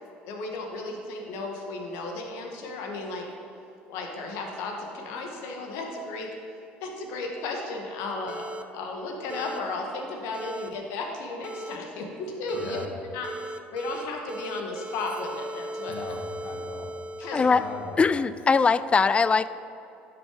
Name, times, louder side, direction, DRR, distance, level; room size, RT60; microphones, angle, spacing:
voice 1, 0.2-3.3 3.9-6.3 6.8-12.8 13.1-13.3 13.7-16.0 17.2-17.4, left 3 dB, 70° left, 2 dB, 1.6 m, -34 dB
sound 1, 8.3-8.6 9.3-9.6 10.3-10.7 11.4-11.8 12.5-12.9 13.2-14.0 14.3-18.0, right 1 dB, 20° right, 0.6 m, -38 dB
voice 2, 12.5-12.9 15.9-16.9 17.4-18.0, left 3 dB, 50° left, 2 dB, 1.7 m, -38 dB
voice 3, 17.3-17.6 18.0-19.5, left 4 dB, 25° left, 15 dB, 0.4 m, -21 dB
11.0 x 6.1 x 5.1 m, 2.8 s
hypercardioid pair, 70°, 5 cm